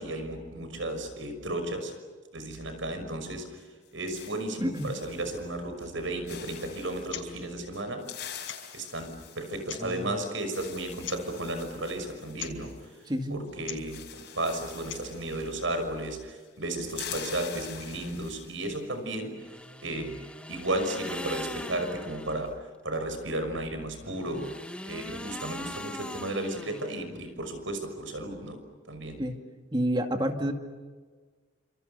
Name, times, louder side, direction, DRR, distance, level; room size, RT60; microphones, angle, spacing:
voice 1, 0.0-1.9 2.3-8.1 8.7-12.7 13.3-19.3 19.8-20.2 20.5-24.5 24.9-28.6 28.9-29.2, right 1 dB, 75° right, 8 dB, 5.9 m, -34 dB
sound 1, 3.6-5.5 5.8-6.0 6.3-7.1 7.7-13.2 13.4-13.5 13.8-16.2 16.4-18.8, left 9 dB, 60° left, 5.3 m, -45 dB
sound 2, 7.0-7.3 7.5-7.6 8.4-8.8 9.5-10.0 11.0-11.3 12.3-12.6 13.6-13.9 14.7-15.2, left 10 dB, 80° left, 5.4 m, -40 dB
voice 2, 9.8-10.2 13.1-13.4 29.2-29.3 29.7-30.5, equal, 20° right, 5 dB, 2.3 m, -29 dB
sound 3, 19.4-22.5 24.0-27.3, left 1 dB, 5° left, 1.1 m, -41 dB
29.5 x 27.5 x 6.8 m, 1.5 s
head